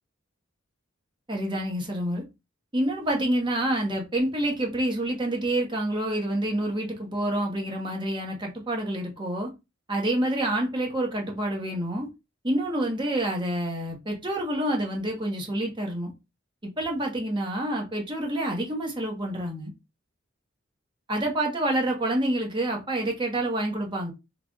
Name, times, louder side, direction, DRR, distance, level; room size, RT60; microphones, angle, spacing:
voice 1, 1.3-2.2 2.7-9.5 9.9-12.1 12.4-16.1 16.6-19.7 21.1-24.1, right 1 dB, 25° right, 1.0 m, -28 dB
3.2 x 2.4 x 3.8 m
head